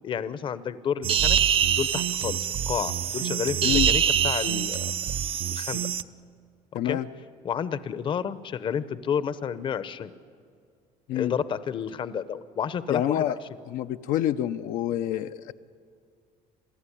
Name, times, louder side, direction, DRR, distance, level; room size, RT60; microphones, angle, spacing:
voice 1, 0.0-2.4 2.7-4.9 5.5-5.8 6.8-7.0 7.4-10.1 11.1-13.4, left 8 dB, 35° left, 15 dB, 0.8 m, -30 dB
sound 1, 1.0-6.0, right 9 dB, 40° right, 0.6 m, -25 dB
voice 2, 6.7-7.1 11.1-11.3 12.9-13.4 13.7-15.5, left 12 dB, 80° left, 9 dB, 0.7 m, -27 dB
27.5 x 15.5 x 10.0 m, 2.2 s
cardioid pair, 155°, 14 cm